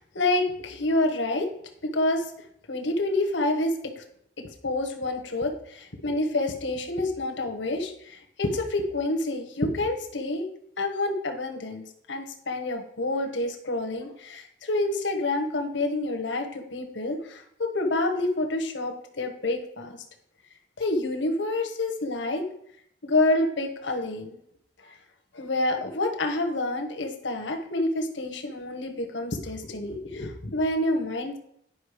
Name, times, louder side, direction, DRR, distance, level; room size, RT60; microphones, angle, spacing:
voice 1, 0.1-1.5 1.9-2.3 2.7-4.0 4.6-10.4 10.8-20.0 20.8-22.4 23.0-24.4 25.3-31.4, left 2 dB, 80° left, 3 dB, 1.3 m, -28 dB
10.0 x 5.4 x 5.1 m, 0.72 s
head